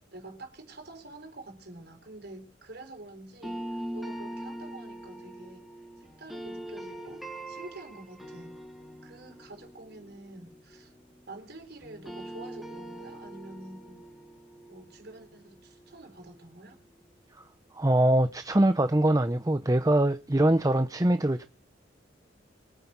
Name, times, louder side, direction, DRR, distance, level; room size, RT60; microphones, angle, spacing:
voice 1, 0.1-5.6 6.0-8.6 9.0-10.9 11.3-14.1 14.7-16.8, right 2 dB, 60° right, 4.3 m, -47 dB
sound 1, 3.4-11.5 11.8-16.8, right 1 dB, ahead, 3.9 m, -43 dB
voice 2, 17.7-21.5, right 1 dB, 20° right, 0.8 m, -23 dB
23.5 x 9.3 x 6.1 m
head